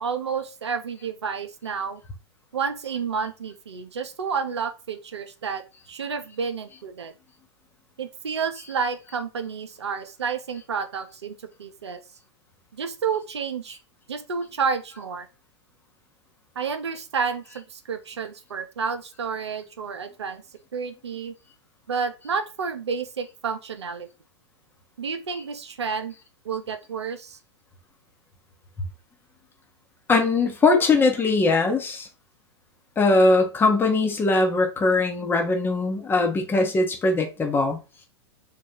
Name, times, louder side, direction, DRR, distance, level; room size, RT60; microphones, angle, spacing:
voice 1, 0.0-2.0 2.5-5.6 5.9-7.1 8.0-12.0 12.7-13.8 14.1-15.3 16.6-20.4 20.7-21.3 21.9-24.1 25.0-26.1 26.4-27.4 30.7-30.8, right 6 dB, 80° right, 0.6 m, -30 dB
voice 2, 30.1-32.0 33.0-37.8, left 3 dB, 15° left, 0.9 m, -21 dB
3.7 x 2.4 x 4.3 m
figure-of-eight pair, 100°, 14 cm